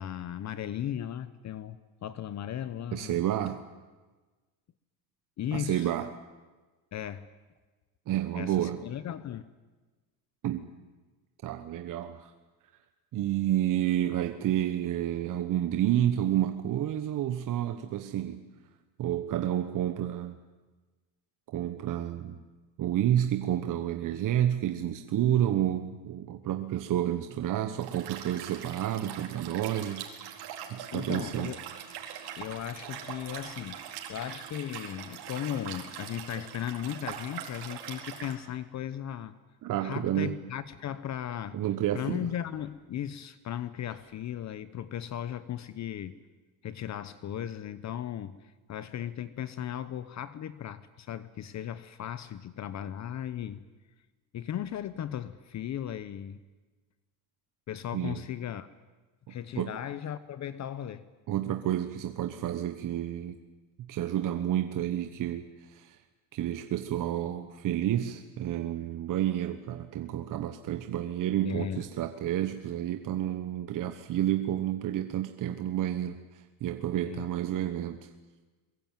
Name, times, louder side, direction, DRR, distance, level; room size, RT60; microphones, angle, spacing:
voice 1, 0.0-3.2 5.4-5.9 6.9-7.3 8.3-9.4 30.9-31.6 32.4-39.3 39.8-41.6 41.9-46.2 46.6-53.6 54.3-56.4 57.7-58.7 59.3-61.0 71.4-71.8 77.0-77.3, left 10 dB, 40° left, 14 dB, 1.0 m, -36 dB
voice 2, 2.9-3.6 5.5-6.1 8.1-8.8 10.4-10.6 11.4-12.3 13.1-18.5 19.0-20.4 21.5-22.4 22.8-30.1 30.7-31.5 39.6-40.3 41.5-42.3 57.9-58.2 59.3-59.8 61.3-63.4 63.8-66.0 66.3-78.1, right 11 dB, 50° right, 8 dB, 1.3 m, -30 dB
Liquid, 27.8-38.3, right 9 dB, 65° right, 4.3 m, -42 dB
22.5 x 22.0 x 9.2 m, 1.3 s
cardioid pair, 125°, 42 cm